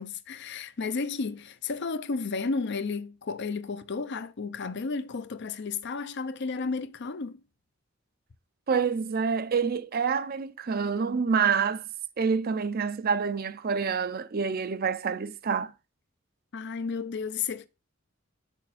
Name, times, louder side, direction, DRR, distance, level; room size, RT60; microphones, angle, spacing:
voice 1, 0.0-7.4 16.5-17.7, left 4 dB, 55° left, 0.6 m, -32 dB
voice 2, 8.7-11.8 12.2-15.7, right 6 dB, 45° right, 0.5 m, -27 dB
6.4 x 6.4 x 4.1 m
head